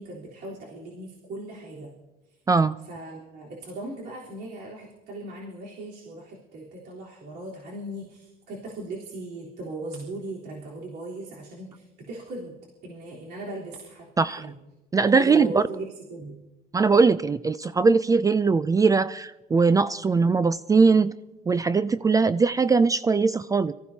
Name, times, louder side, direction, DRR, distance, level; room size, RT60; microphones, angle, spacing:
voice 1, 0.0-1.9 2.9-12.5 12.8-14.5 15.1-16.4, right 2 dB, 75° right, -5 dB, 3.7 m, -38 dB
voice 2, 14.9-15.6 16.7-21.1 21.5-23.7, right 4 dB, 20° right, 15 dB, 0.4 m, -20 dB
25.5 x 15.0 x 2.8 m, 1.0 s
cardioid pair, 110°, 17 cm